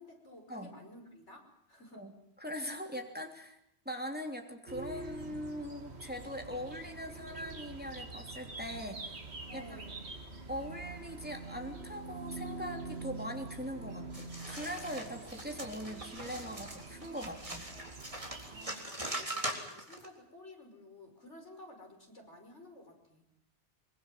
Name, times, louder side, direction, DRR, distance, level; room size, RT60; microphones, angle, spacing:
voice 1, 0.0-2.0 9.5-10.0 18.5-23.2, left 1 dB, 80° left, 3 dB, 6.0 m, -53 dB
voice 2, 2.4-3.6 3.8-9.2 9.5-9.8 10.5-17.6, equal, 10° right, 3 dB, 3.2 m, -41 dB
sound 1, 4.7-18.7, right 3 dB, 65° right, 2.3 m, -45 dB
sound 2, 14.1-20.1, right 1 dB, 30° right, 3.9 m, -41 dB
24.5 x 23.5 x 7.6 m, 0.75 s
omnidirectional pair, 1.2 m